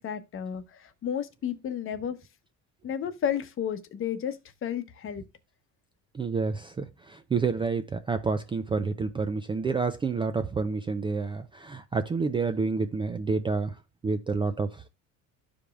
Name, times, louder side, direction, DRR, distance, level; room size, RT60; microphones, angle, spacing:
voice 1, 0.0-2.2 2.8-5.2, left 9 dB, 40° left, 0.9 m, -32 dB
voice 2, 6.1-13.7 14.0-14.7, right 4 dB, 15° right, 0.3 m, -29 dB
13.0 x 5.0 x 2.3 m
cardioid pair, 130°, 33 cm